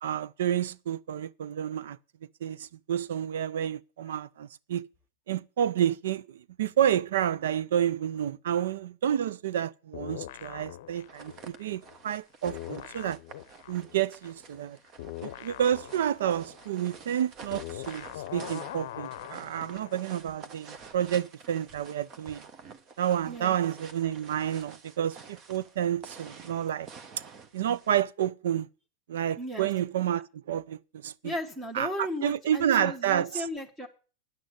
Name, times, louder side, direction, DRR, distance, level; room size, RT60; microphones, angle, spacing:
voice 1, 0.0-2.0 2.4-4.9 5.3-13.2 13.7-14.8 15.2-18.1 18.3-22.4 23.0-26.9 27.5-28.7 29.1-31.3 31.7-31.9 32.2-33.4, right 10 dB, 85° right, 0.5 m, -29 dB
sound 1, 9.9-12.2 12.4-20.0, left 14 dB, 70° left, 0.6 m, -42 dB
sound 2, 10.9-28.0, right 5 dB, 35° right, 1.3 m, -49 dB
voice 2, 29.4-29.7 31.2-33.9, left 1 dB, 15° right, 1.5 m, -35 dB
9.7 x 6.4 x 8.1 m
supercardioid pair, 130°, 0 cm